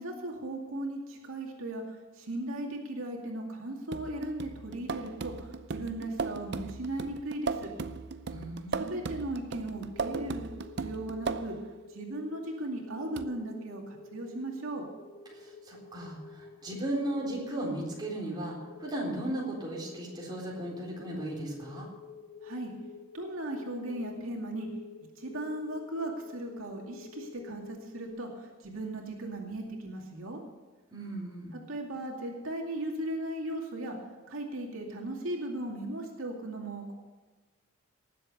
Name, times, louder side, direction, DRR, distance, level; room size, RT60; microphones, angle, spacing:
voice 1, 0.0-7.7 8.8-10.5 10.8-11.6 11.9-14.9 22.4-22.7 23.1-24.7 25.2-30.4 31.5-34.0 34.3-36.9, right 1 dB, 80° right, 0 dB, 2.4 m, -37 dB
sound 1, 3.9-11.7 13.2-13.3, right 4 dB, 55° right, 0.6 m, -37 dB
voice 2, 8.3-9.0 15.3-21.9 30.9-31.6, right 1 dB, 20° right, -3 dB, 3.8 m, -36 dB
sound 2, 9.9-28.1, left 4 dB, 80° left, 1.8 m, -50 dB
19.0 x 7.7 x 6.8 m, 1.3 s
head